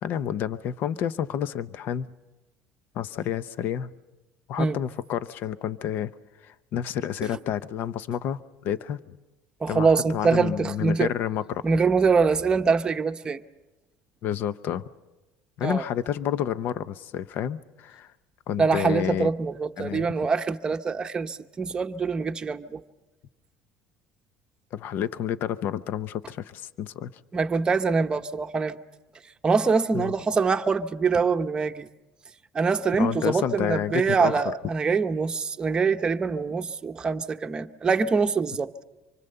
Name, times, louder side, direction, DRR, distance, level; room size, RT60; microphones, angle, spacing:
voice 1, 0.0-2.1 2.9-3.9 4.5-6.1 6.4-9.0 9.7-11.6 14.2-14.8 15.6-18.1 18.5-19.3 19.8-20.1 24.7-27.1 29.9-30.1 33.0-34.4, left 9 dB, 55° left, 0.7 m, -29 dB
voice 2, 9.6-11.1 11.6-13.4 15.6-15.8 18.6-22.8 27.3-28.8 29.4-31.9 32.5-38.7, right 5 dB, 20° right, 0.9 m, -24 dB
26.0 x 24.0 x 6.8 m
cardioid pair, 130°, 4 cm